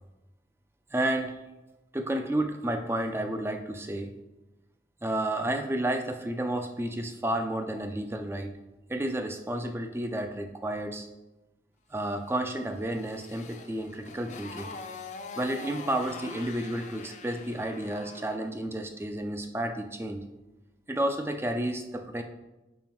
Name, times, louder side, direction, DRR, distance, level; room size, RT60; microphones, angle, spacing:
voice 1, 0.9-1.4 1.9-4.1 5.0-8.5 8.9-11.1 11.9-14.7 15.4-20.2 20.9-22.2, right 1 dB, 15° right, 6 dB, 0.4 m, -31 dB
Motorcycle, 12.4-18.5, left 4 dB, 40° left, 0.5 m, -44 dB
5.6 x 5.1 x 4.5 m, 1.1 s
head